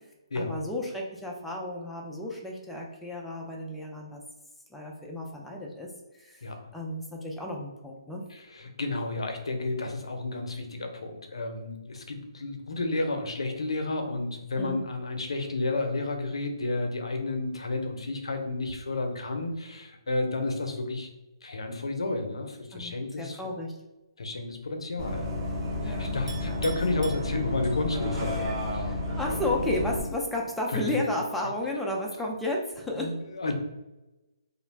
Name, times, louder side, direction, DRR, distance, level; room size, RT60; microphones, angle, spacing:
voice 1, 0.4-4.2 4.7-6.5 6.7-8.2 14.6-14.8 22.7-23.7 25.8-26.2 28.9-33.1, left 1 dB, ahead, -2 dB, 0.3 m, -33 dB
voice 2, 8.3-21.1 21.4-23.4 24.2-25.3 25.8-28.9 30.7-30.8 33.0-33.5, left 2 dB, 80° left, 5 dB, 0.5 m, -31 dB
Bus, 25.0-30.0, left 2 dB, 15° right, 0.7 m, -31 dB
Chink clink, 26.3-27.9, right 5 dB, 60° right, 0.8 m, -45 dB
2.4 x 2.0 x 3.1 m, 1.1 s
hypercardioid pair, 150°, 3 cm